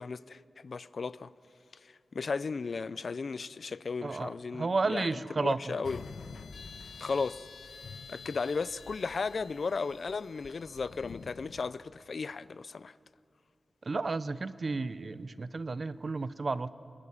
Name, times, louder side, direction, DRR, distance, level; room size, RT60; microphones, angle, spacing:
voice 1, 0.0-1.3 2.1-5.1 5.4-6.0 7.0-7.4 8.1-12.9, left 4 dB, 65° left, 0.5 m, -35 dB
voice 2, 4.0-5.8 13.8-16.7, right 3 dB, 50° right, 0.8 m, -32 dB
sound 1, 5.8-11.7, left 5 dB, 90° left, 0.9 m, -48 dB
23.0 x 20.0 x 9.9 m
wide cardioid pair, 80°, 0 cm